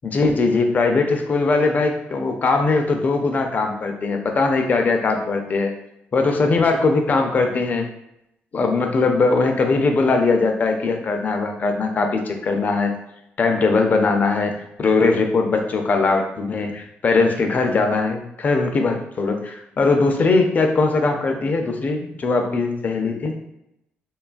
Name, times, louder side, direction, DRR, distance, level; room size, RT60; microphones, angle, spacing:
voice 1, 0.0-5.7 6.1-7.9 8.5-12.9 13.4-23.3, left 3 dB, 40° left, 4 dB, 0.4 m, -20 dB
2.8 x 2.3 x 2.4 m, 0.82 s
cardioid pair, 95°, 4 cm